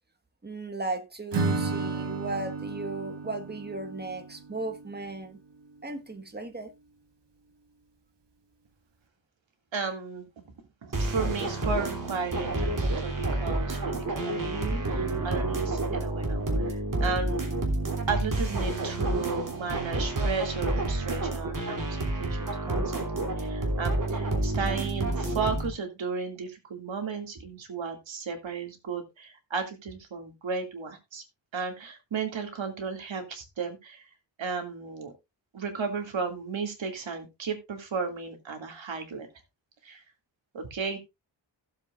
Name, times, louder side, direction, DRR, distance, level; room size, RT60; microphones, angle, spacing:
voice 1, 0.4-5.4 5.8-6.7, right 2 dB, 20° right, 1.5 m, -36 dB
Acoustic guitar / Strum, 1.3-5.2, right 4 dB, 65° right, 2.0 m, -33 dB
voice 2, 9.7-10.2 10.8-17.6 18.1-31.2 31.5-34.0 34.4-35.1 35.5-39.3 39.8-40.0 40.5-41.0, right 5 dB, 85° right, 2.5 m, -34 dB
sound 1, 10.9-25.7, right 2 dB, 45° right, 3.0 m, -29 dB
16.0 x 7.7 x 2.5 m
wide cardioid pair, 125°, 45 cm